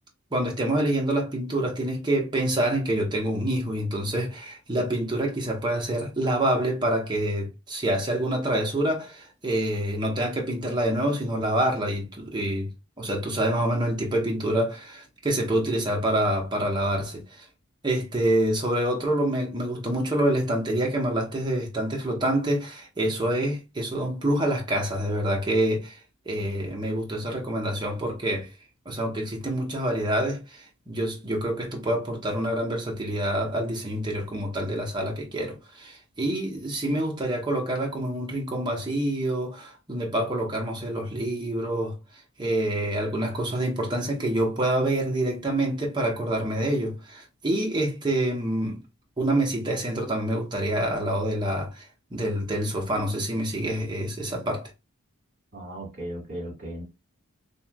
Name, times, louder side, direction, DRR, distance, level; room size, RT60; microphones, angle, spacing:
voice 1, 0.3-12.7 13.0-17.4 17.8-26.0 26.3-28.5 28.9-41.9 42.4-48.8 49.2-51.8 52.1-54.7, right 1 dB, 20° right, 0.8 m, -27 dB
voice 2, 55.5-56.8, right 1 dB, 45° right, 1.8 m, -36 dB
3.0 x 2.9 x 2.2 m
head